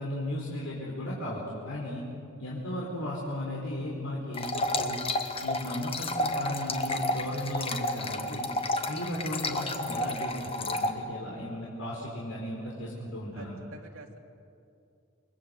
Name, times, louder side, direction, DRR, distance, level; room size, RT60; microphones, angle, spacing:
voice 1, 0.0-2.0 2.4-5.0 5.4-8.5 8.9-13.6, left 1 dB, 80° left, -5 dB, 4.7 m, -35 dB
sound 1, 4.3-10.9, left 2 dB, 25° left, 1.5 m, -31 dB
voice 2, 13.3-14.2, right 3 dB, 90° right, 2 dB, 2.9 m, -48 dB
28.5 x 23.5 x 8.0 m, 2.5 s
head